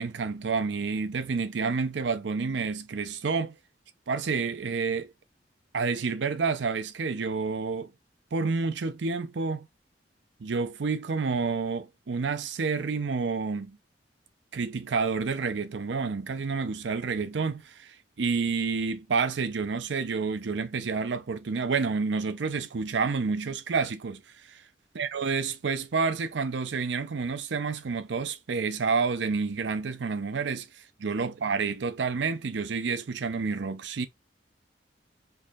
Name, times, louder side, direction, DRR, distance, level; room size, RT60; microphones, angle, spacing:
voice 1, 0.0-3.5 4.1-5.1 5.7-7.9 8.3-9.7 10.4-13.8 14.5-24.2 24.5-24.6 25.0-30.7 31.0-34.1, right 4 dB, 90° right, 0.5 m, -29 dB
4.7 x 2.7 x 2.4 m
head